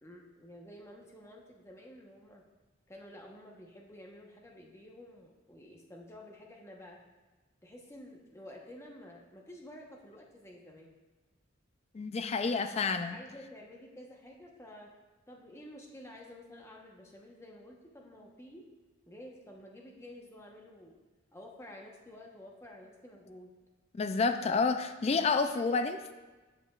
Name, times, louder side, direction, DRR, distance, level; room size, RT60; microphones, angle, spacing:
voice 1, 0.0-2.4 2.9-7.0 7.6-11.0 13.1-14.9 15.3-18.7 19.1-21.0 21.3-23.5 25.3-25.7 26.0-26.1, left 1 dB, 15° left, 0 dB, 0.9 m, -51 dB
voice 2, 11.9-13.2 23.9-26.1, left 4 dB, 30° left, 9 dB, 0.3 m, -29 dB
14.0 x 5.1 x 2.4 m, 1.2 s
head